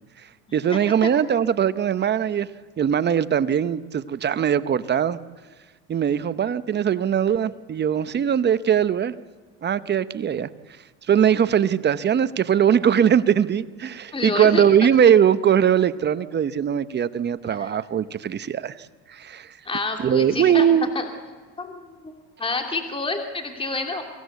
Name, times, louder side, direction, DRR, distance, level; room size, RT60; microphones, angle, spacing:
voice 1, 0.2-2.5 2.8-5.2 5.9-9.1 9.6-10.5 11.1-19.6 20.0-20.9, right 8 dB, 30° right, 14 dB, 0.8 m, -21 dB
voice 2, 14.1-14.6 17.6-17.7 19.7-20.7 20.9-21.1 21.6-22.1 22.4-24.0, left 3 dB, 15° left, 4 dB, 2.7 m, -28 dB
24.0 x 17.0 x 8.2 m, 1.5 s
supercardioid pair, 110°, 34 cm